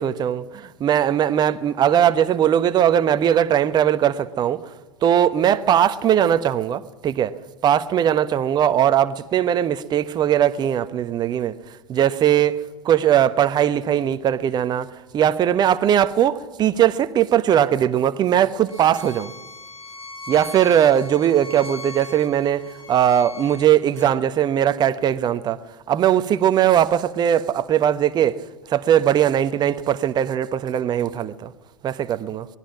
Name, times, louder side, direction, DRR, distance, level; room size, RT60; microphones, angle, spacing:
voice 1, 0.0-4.6 5.0-7.3 7.6-11.5 11.9-12.6 12.8-19.3 20.3-25.6 25.9-28.4 28.7-31.5 31.8-32.5, right 10 dB, 25° right, 1.1 m, -19 dB
Bowed string instrument, 18.7-24.1, left 3 dB, 80° left, 4.0 m, -39 dB
24.5 x 19.5 x 6.1 m
figure-of-eight pair, 95°, 17 cm